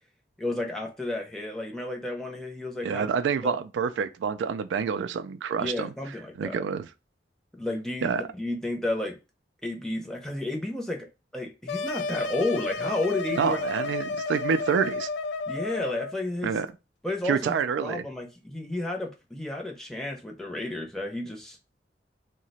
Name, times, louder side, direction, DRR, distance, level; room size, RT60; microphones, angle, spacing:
voice 1, 0.4-3.1 3.4-3.6 5.6-6.6 7.6-9.2 9.6-11.1 11.3-13.6 15.5-16.6 17.0-21.6, left 2 dB, 5° left, 0.6 m, -32 dB
voice 2, 2.8-6.9 8.0-8.2 13.4-15.1 16.4-16.7 17.2-18.0, right 6 dB, 90° right, 0.3 m, -28 dB
sound 1, 11.7-16.1, left 3 dB, 85° left, 0.4 m, -32 dB
2.8 x 2.1 x 4.0 m
head